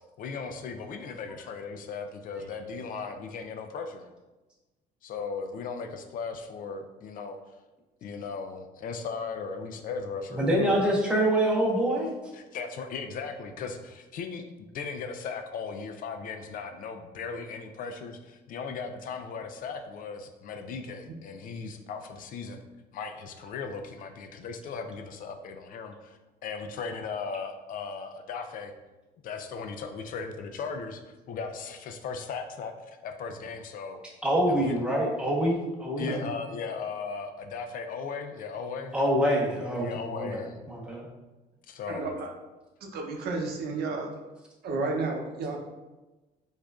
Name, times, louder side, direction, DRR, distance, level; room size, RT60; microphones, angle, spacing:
voice 1, 0.2-4.1 5.0-7.4 8.0-11.0 12.3-14.4 14.7-22.6 22.9-28.7 29.2-34.0 34.5-34.8 36.0-38.9 39.5-40.6 41.7-42.1, left 5 dB, 55° left, 6 dB, 0.4 m, -37 dB
voice 2, 10.3-12.1 34.2-36.1 38.9-41.1, right 1 dB, 5° right, -4 dB, 1.0 m, -26 dB
voice 3, 41.9-42.3 42.8-44.1 44.6-45.6, right 3 dB, 70° right, 1 dB, 0.7 m, -32 dB
4.8 x 2.4 x 2.3 m, 1.1 s
cardioid pair, 110°, 17 cm